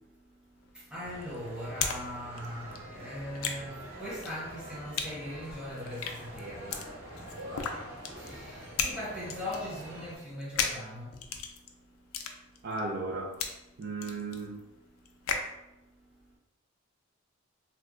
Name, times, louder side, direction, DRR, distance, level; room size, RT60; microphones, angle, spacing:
sound 1, 0.6-2.0 2.3-15.5, left 6 dB, 85° left, 0.4 m, -37 dB
voice 1, 0.9-6.9 7.2-7.9 8.2-11.1, equal, 5° right, -7 dB, 0.8 m, -40 dB
sound 2, 1.0-10.2, right 1 dB, 65° right, 1.0 m, -46 dB
voice 2, 12.6-13.4 13.8-14.6, right 3 dB, 50° right, -1 dB, 0.4 m, -35 dB
2.9 x 2.1 x 3.6 m, 0.95 s
head